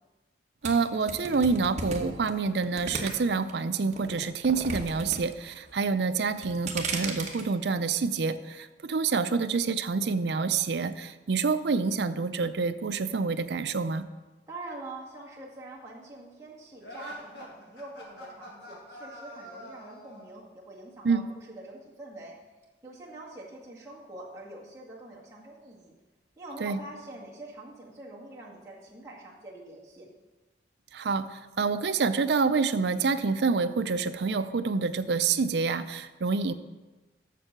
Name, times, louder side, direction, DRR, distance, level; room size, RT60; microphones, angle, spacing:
sound 1, 0.6-3.5 3.9-5.2 5.4-5.9 6.3-7.4, right 4 dB, 40° right, 1.0 m, -35 dB
voice 1, 0.6-14.1 21.0-21.3 26.6-26.8 30.9-36.5, right 4 dB, 65° right, 11 dB, 0.5 m, -27 dB
voice 2, 14.5-22.4 22.8-25.9 26.4-30.1, right 2 dB, 15° right, -5 dB, 1.8 m, -45 dB
sound 2, 16.8-20.3, equal, 65° left, 2.0 m, -44 dB
7.5 x 6.7 x 6.6 m, 1.2 s
head